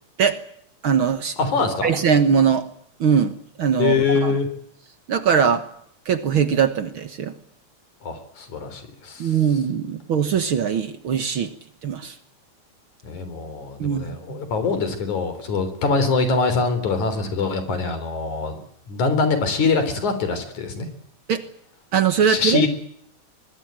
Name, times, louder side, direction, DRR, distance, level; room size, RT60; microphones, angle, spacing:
voice 1, 0.8-1.4 1.8-2.7 3.0-3.9 4.2-4.3 5.1-5.7 6.1-7.3 9.2-11.5 11.8-12.2 13.8-14.4 21.3-21.4 21.9-22.7, right 7 dB, 55° right, 10 dB, 1.8 m, -21 dB
voice 2, 1.4-1.9 3.8-4.5 8.0-9.4 13.0-18.6 18.9-20.9 22.3-22.7, left 4 dB, 85° left, 10 dB, 5.1 m, -23 dB
23.5 x 20.5 x 8.9 m, 0.69 s
omnidirectional pair, 3.3 m